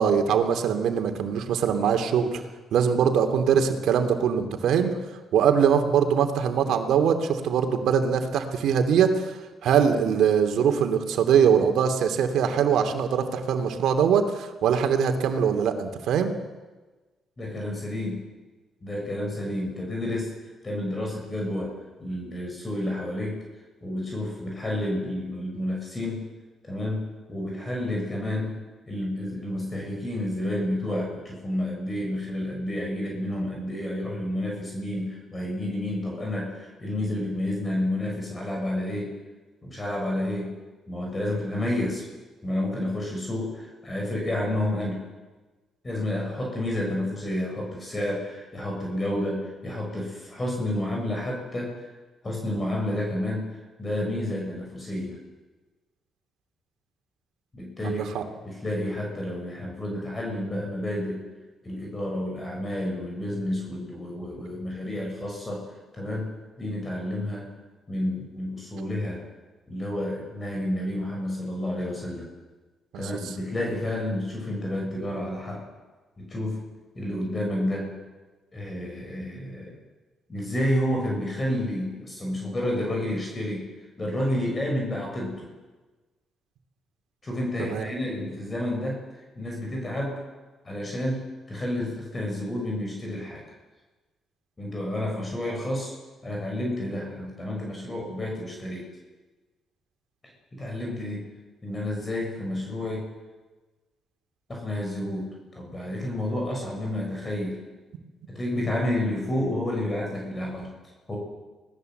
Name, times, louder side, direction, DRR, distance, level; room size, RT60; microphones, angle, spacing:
voice 1, 0.0-2.4 2.7-5.0 5.3-9.3 9.6-16.3 57.8-58.2 72.9-73.0 87.6-87.9, right 7 dB, 80° right, 6 dB, 2.8 m, -22 dB
voice 2, 17.4-18.2 18.8-20.3 20.6-21.7 22.0-23.4 23.8-26.3 26.6-28.6 28.9-39.1 39.6-40.5 40.9-42.0 42.4-45.0 45.8-51.9 52.2-55.2 57.5-58.0 58.4-61.2 61.6-66.3 66.6-67.5 67.9-69.2 69.7-72.3 73.0-75.6 76.2-76.6 77.0-77.9 78.5-79.8 80.3-83.6 84.0-85.5 87.2-89.0 89.4-90.2 90.6-93.4 94.6-95.9 96.2-98.9 100.5-101.3 101.6-103.1 104.5-107.6 108.3-110.7 111.1-111.2, left 1 dB, 25° left, 0 dB, 7.1 m, -30 dB
26.0 x 18.5 x 8.0 m, 1.2 s
cardioid pair, 90°, 0 cm